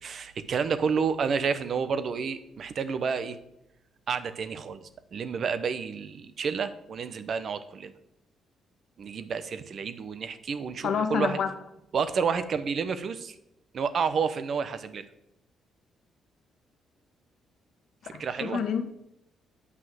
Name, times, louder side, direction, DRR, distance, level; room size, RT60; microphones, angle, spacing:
voice 1, 0.0-3.4 4.1-7.9 9.0-11.4 11.9-13.4 13.7-15.1 18.0-18.6, right 6 dB, 55° right, 12 dB, 1.0 m, -30 dB
voice 2, 10.8-11.5 18.0-18.8, left 7 dB, 70° left, 8 dB, 1.3 m, -28 dB
8.6 x 5.7 x 7.8 m, 0.81 s
cardioid pair, 90°, 0 cm